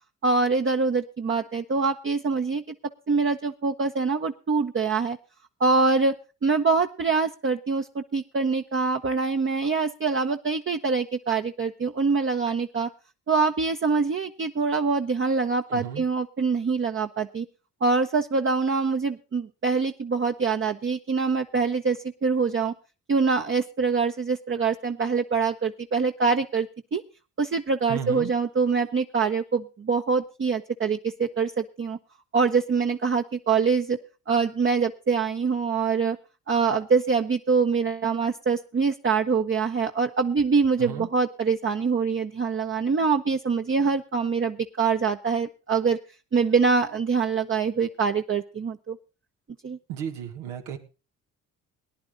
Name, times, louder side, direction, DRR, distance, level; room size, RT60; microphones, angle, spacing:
voice 1, 0.2-2.7 3.1-5.2 5.6-6.1 6.4-12.9 13.3-17.4 17.8-22.7 23.1-27.0 27.4-32.0 32.3-34.0 34.3-36.2 36.5-46.0 46.3-49.0 49.6-49.8, right 4 dB, 35° right, 4 dB, 1.0 m, -24 dB
voice 2, 15.7-16.1 27.9-28.3 40.8-41.1 49.9-50.8, right 9 dB, 90° right, 5 dB, 1.8 m, -34 dB
19.0 x 10.5 x 3.8 m, 0.32 s
hypercardioid pair, 55°, 37 cm